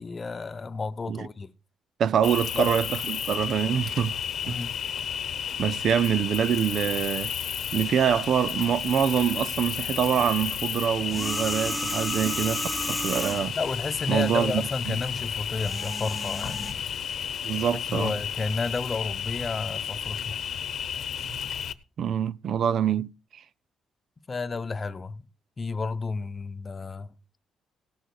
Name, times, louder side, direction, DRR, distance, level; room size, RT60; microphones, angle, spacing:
voice 1, 0.0-1.5 2.5-2.7 4.4-4.8 13.5-16.9 17.7-20.4 24.3-25.3 25.6-27.1, left 4 dB, 35° left, 0.9 m, -31 dB
voice 2, 2.0-4.2 4.5-4.6 5.6-7.3 7.7-13.6 14.1-14.6 17.4-18.1 22.0-23.4, right 8 dB, 65° right, 0.5 m, -25 dB
Cricket, 2.2-21.7, left 8 dB, 65° left, 0.9 m, -32 dB
sound 1, 11.0-13.6 15.4-16.7, right 1 dB, 10° right, 0.9 m, -33 dB
18.0 x 6.5 x 4.7 m
cardioid pair, 90°, 0 cm